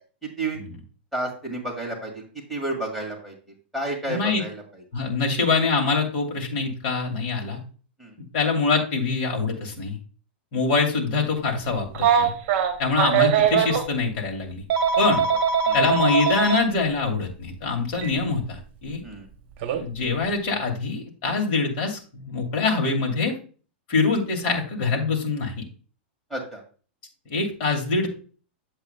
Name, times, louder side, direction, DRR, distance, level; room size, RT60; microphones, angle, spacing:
voice 1, 0.2-0.6 1.1-3.4 3.7-4.8 8.0-8.2 15.3-15.4 15.7-15.8 19.0-19.3 26.3-26.6, right 2 dB, 5° left, -1 dB, 2.2 m, -31 dB
voice 2, 4.1-4.4 4.9-7.6 8.3-10.0 10.5-12.3 12.8-14.6 15.0-15.2 15.7-19.0 19.7-23.3 23.9-25.5 27.3-28.1, left 4 dB, 45° left, 1 dB, 2.5 m, -24 dB
Telephone, 11.9-13.8 14.7-16.6 17.9-18.1 19.6-19.8, right 7 dB, 40° right, 1.3 m, -21 dB
8.5 x 7.8 x 2.2 m, 0.38 s
supercardioid pair, 150°, 6 cm